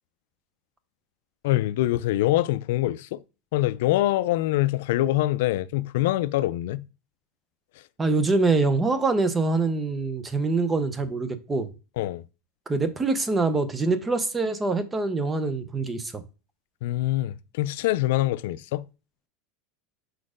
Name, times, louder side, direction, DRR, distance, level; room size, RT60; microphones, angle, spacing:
voice 1, 1.4-3.2 3.5-6.8 12.0-12.2 16.8-18.8, left 15 dB, 75° left, 0.3 m, -24 dB
voice 2, 8.0-11.7 12.7-16.2, right 3 dB, 15° right, 0.7 m, -24 dB
4.7 x 4.3 x 5.0 m
supercardioid pair, 135°, 0 cm